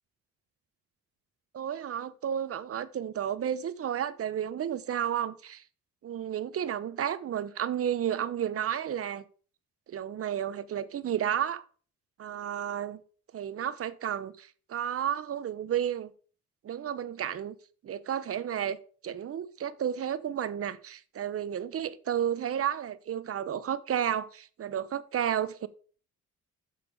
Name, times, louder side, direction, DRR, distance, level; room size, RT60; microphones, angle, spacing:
voice 1, 1.5-5.6 6.0-9.2 9.9-11.6 12.2-13.0 13.3-16.1 16.6-17.5 17.8-18.8 19.0-25.7, right 9 dB, 50° right, 0.8 m, -32 dB
6.9 x 6.7 x 5.3 m
cardioid pair, 90°, 30 cm